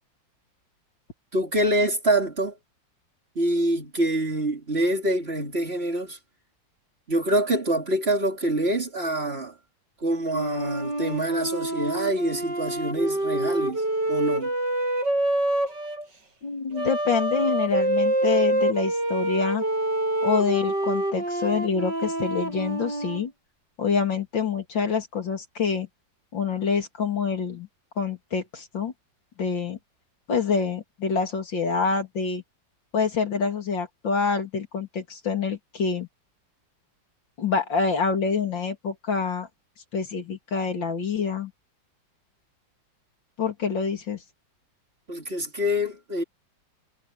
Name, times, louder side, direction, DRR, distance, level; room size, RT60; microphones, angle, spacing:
voice 1, 1.3-2.6 3.3-6.2 7.1-9.5 10.0-13.8 14.1-14.5 45.1-46.2, right 1 dB, 30° right, 2.9 m, -25 dB
Wind instrument woodwind instrument, 10.3-16.1 16.7-23.2, right 1 dB, 65° right, 8.9 m, -26 dB
voice 2, 16.4-19.6 20.2-23.3 23.8-25.9 26.3-27.7 28.0-28.9 29.4-29.8 30.3-32.4 32.9-36.1 37.4-39.5 39.9-41.5 43.4-44.2, left 5 dB, 80° left, 3.6 m, -26 dB
omnidirectional pair, 2.0 m